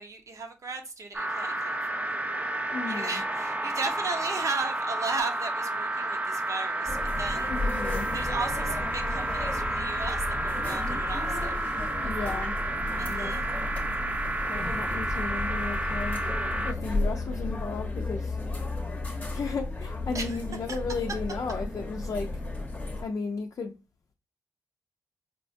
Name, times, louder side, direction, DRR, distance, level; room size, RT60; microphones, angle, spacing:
voice 1, 0.0-2.2 2.9-7.5 8.1-11.6 13.0-13.4 20.1-20.4, right 3 dB, 55° right, 0.7 m, -36 dB
sound 1, 1.1-16.7, right 1 dB, 20° right, 0.4 m, -31 dB
voice 2, 2.7-3.2 7.5-8.1 12.0-12.5 13.1-13.3 14.5-16.2 16.6-18.4 19.3-22.3 23.0-23.7, left 4 dB, 55° left, 0.5 m, -34 dB
sound 2, 6.9-23.0, left 2 dB, 25° left, 0.8 m, -33 dB
4.4 x 2.1 x 2.6 m
supercardioid pair, 55°, 7 cm